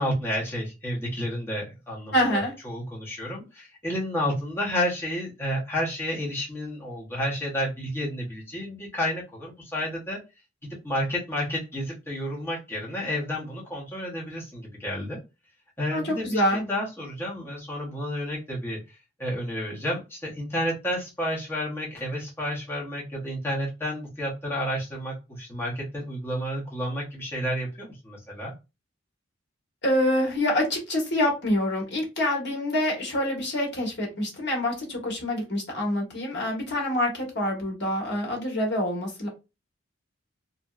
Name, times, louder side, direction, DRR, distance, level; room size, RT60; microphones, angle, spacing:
voice 1, 0.0-10.2 10.8-15.2 15.8-28.5, equal, 10° left, -5 dB, 0.8 m, -31 dB
voice 2, 2.1-2.5 15.9-16.6 29.8-39.3, left 1 dB, 60° left, 0 dB, 1.2 m, -26 dB
2.9 x 2.7 x 2.3 m, 0.26 s
head